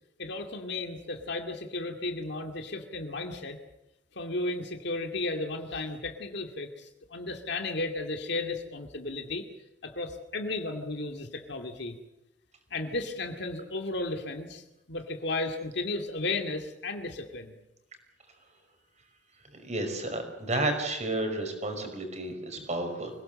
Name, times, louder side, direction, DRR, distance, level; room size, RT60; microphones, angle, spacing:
voice 1, 0.2-3.6 4.2-9.4 9.8-12.0 12.7-17.6 20.1-20.2 22.6-22.7, left 2 dB, 65° left, 4 dB, 2.3 m, -34 dB
voice 2, 19.6-23.1, right 2 dB, 40° right, 6 dB, 5.4 m, -31 dB
26.0 x 18.0 x 7.7 m, 0.94 s
head